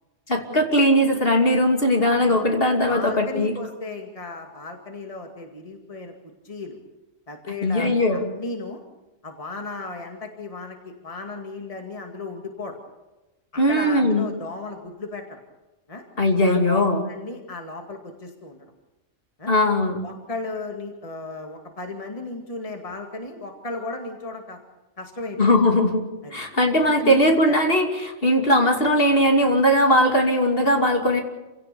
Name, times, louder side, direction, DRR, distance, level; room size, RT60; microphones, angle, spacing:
voice 1, 0.3-3.5 7.5-8.2 13.6-14.3 16.2-17.0 19.5-20.0 25.4-26.0 26.3-31.2, left 1 dB, 45° left, 2 dB, 2.9 m, -19 dB
voice 2, 2.9-6.8 7.3-8.8 9.2-12.8 13.5-15.4 15.9-16.0 16.4-18.7 19.4-19.5 20.0-24.6 25.0-25.4 26.2-26.4 27.0-27.6 28.2-28.4, left 2 dB, 25° left, 3 dB, 2.3 m, -35 dB
28.0 x 17.0 x 6.9 m, 1.1 s
omnidirectional pair, 1.3 m